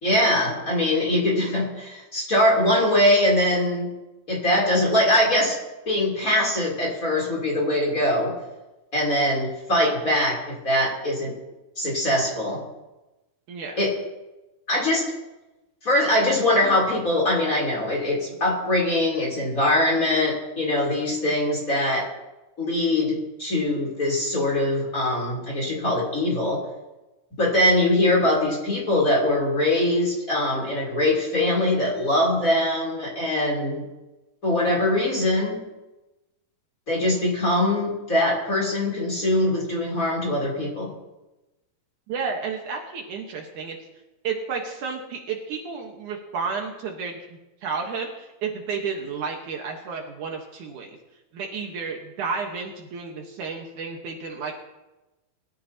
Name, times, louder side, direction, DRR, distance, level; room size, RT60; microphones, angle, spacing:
voice 1, 0.0-3.9 4.3-5.6 5.8-8.3 8.9-11.3 11.8-12.6 13.8-13.9 14.7-15.1 15.8-22.1 22.6-26.6 27.4-33.8 34.4-35.6 36.9-40.9, left 1 dB, 25° left, -3 dB, 3.5 m, -22 dB
voice 2, 13.5-13.8 42.1-43.8 44.2-51.0 51.3-54.6, right 5 dB, 65° right, 1 dB, 2.6 m, -32 dB
22.0 x 13.0 x 2.9 m, 1.0 s
omnidirectional pair, 4.0 m